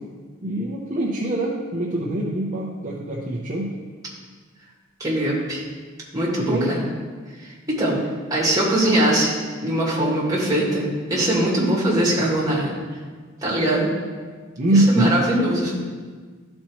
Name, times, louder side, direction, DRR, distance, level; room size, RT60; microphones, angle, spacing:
voice 1, 0.4-3.7 6.4-6.7 14.6-15.1, right 1 dB, 40° right, -5 dB, 0.7 m, -23 dB
voice 2, 5.0-5.6 6.1-6.9 7.4-8.0 8.3-12.7 13.4-13.9 14.7-15.7, right 1 dB, 15° right, -5 dB, 1.7 m, -21 dB
12.5 x 4.4 x 3.0 m, 1.5 s
head